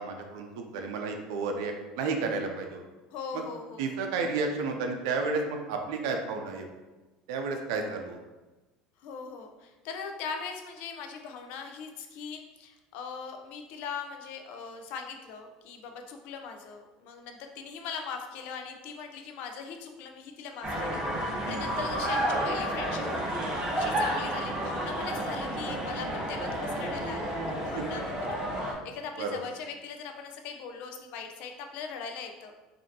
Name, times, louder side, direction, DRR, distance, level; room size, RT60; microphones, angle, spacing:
voice 1, 0.0-2.8 3.3-3.4 3.8-6.7 7.3-8.2 21.4-21.7 27.7-27.8 29.2-29.4, right 4 dB, 80° right, 3 dB, 0.5 m, -32 dB
voice 2, 3.1-3.9 9.0-32.5, left 5 dB, 65° left, 5 dB, 0.6 m, -40 dB
sound 1, 20.6-28.7, right 1 dB, 30° right, 1.3 m, -31 dB
5.0 x 2.7 x 2.8 m, 1.2 s
supercardioid pair, 105°, 3 cm